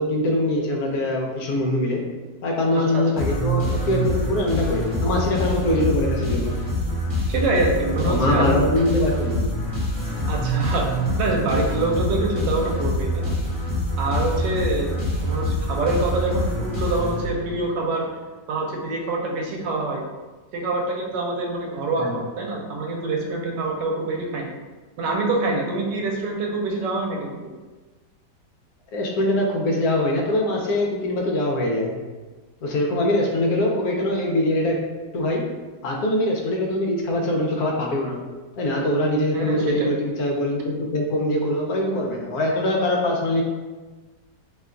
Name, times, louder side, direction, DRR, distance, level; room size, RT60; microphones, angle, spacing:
voice 1, 0.0-2.0 2.4-6.6 8.0-9.5 22.0-22.2 28.9-31.9 32.6-34.8 35.1-35.5 35.8-38.2 38.6-43.4, left 1 dB, 70° left, 0 dB, 1.0 m, -23 dB
voice 2, 2.7-3.1 7.3-8.6 10.3-10.9 11.2-13.3 13.9-14.9 15.2-18.1 18.5-20.0 20.5-24.5 25.0-27.4 39.3-39.9, right 2 dB, 85° right, 0 dB, 1.2 m, -25 dB
sound 1, 3.1-17.7, equal, 15° right, 0.9 m, -25 dB
2.9 x 2.2 x 3.6 m, 1.3 s
omnidirectional pair, 1.9 m